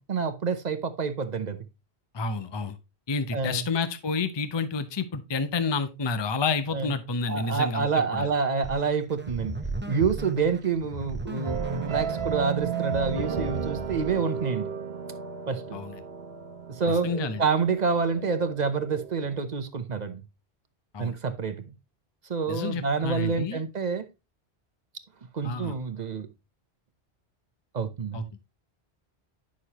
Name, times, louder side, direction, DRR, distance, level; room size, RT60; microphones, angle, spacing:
voice 1, 0.1-1.6 3.3-3.6 6.7-6.9 7.3-11.6 11.9-14.7 15.5-15.8 16.7-20.2 21.0-21.6 22.3-24.1 25.3-26.3 27.7-28.3, right 5 dB, 45° right, 0.9 m, -28 dB
voice 2, 2.1-2.7 3.1-8.3 15.7-15.9 17.0-17.4 20.9-21.2 22.5-23.6 25.4-25.7 28.1-28.2, left 4 dB, 30° left, 0.6 m, -29 dB
sound 1, 8.6-14.4, right 2 dB, 10° right, 0.7 m, -36 dB
sound 2, 11.4-19.4, right 8 dB, 65° right, 1.1 m, -34 dB
9.9 x 6.3 x 2.9 m
omnidirectional pair, 1.1 m